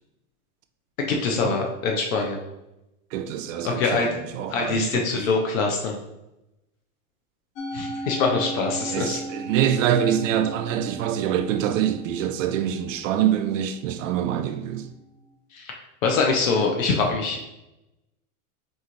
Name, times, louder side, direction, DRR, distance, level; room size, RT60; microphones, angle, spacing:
voice 1, 1.0-2.4 3.6-4.1 4.5-6.0 7.7-9.2 15.5-15.7 16.0-17.4, left 4 dB, 70° left, 0.8 m, -24 dB
voice 2, 3.1-5.2 8.9-14.9, right 10 dB, 65° right, 0.5 m, -25 dB
Musical instrument, 7.6-14.0, right 1 dB, 30° left, 0.6 m, -37 dB
4.0 x 3.1 x 3.8 m
supercardioid pair, 140°, 42 cm